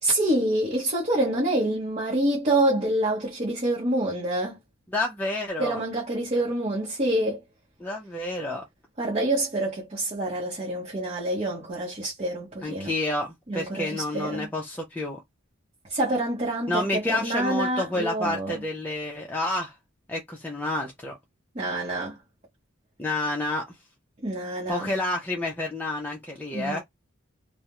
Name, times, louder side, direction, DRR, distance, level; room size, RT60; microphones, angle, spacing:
voice 1, 0.0-4.6 5.6-7.4 9.0-12.9 13.5-14.5 15.9-18.6 21.5-22.2 24.2-24.9 26.5-26.8, right 1 dB, 30° right, 0.7 m, -27 dB
voice 2, 4.9-5.8 7.8-8.6 12.6-15.2 16.7-19.7 20.1-21.1 23.0-23.7 24.7-26.8, left 2 dB, 10° left, 0.4 m, -29 dB
2.3 x 2.0 x 2.9 m
head